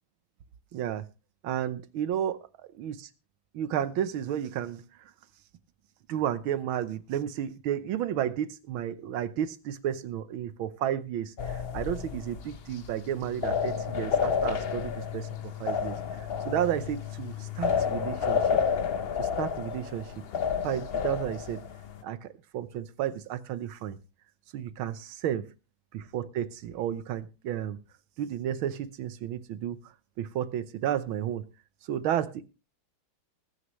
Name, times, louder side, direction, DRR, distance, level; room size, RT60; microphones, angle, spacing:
voice 1, 0.7-1.1 1.4-3.1 3.5-4.8 6.1-18.6 19.2-20.2 20.6-21.6 22.0-24.0 24.5-25.5 25.9-27.8 28.2-31.5 31.8-32.4, right 10 dB, 90° right, 1.7 m, -32 dB
sound 1, 11.4-22.0, left 6 dB, 70° left, 0.5 m, -30 dB
20.0 x 9.6 x 3.1 m
omnidirectional pair, 2.2 m